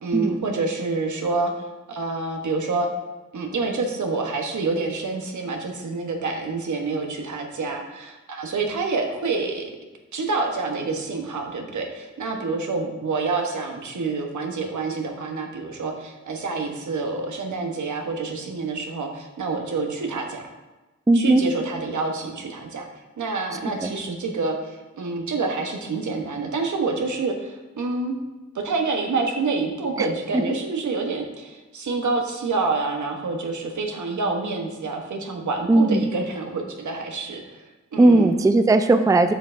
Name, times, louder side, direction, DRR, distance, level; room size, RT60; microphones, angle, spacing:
voice 1, 0.0-2.9 3.3-9.7 10.1-20.5 21.1-22.9 23.2-28.2 28.5-37.6 37.9-38.3, right 3 dB, 80° right, 3 dB, 1.0 m, -27 dB
voice 2, 21.1-21.4 23.8-23.9 30.0-30.1 30.3-30.4 35.7-36.1 38.0-39.3, right 2 dB, 10° right, 9 dB, 0.4 m, -17 dB
8.6 x 5.5 x 2.5 m, 1.1 s
cardioid pair, 45°, 29 cm